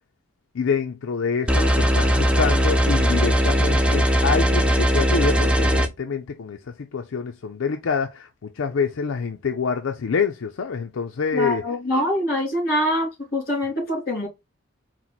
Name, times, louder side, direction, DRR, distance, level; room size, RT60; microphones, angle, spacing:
voice 1, 0.5-11.6, left 5 dB, 85° left, 0.5 m, -26 dB
sound 1, 1.5-5.9, equal, 5° right, 0.4 m, -19 dB
voice 2, 11.3-14.3, left 1 dB, 50° left, 2.6 m, -24 dB
4.5 x 2.1 x 4.0 m
head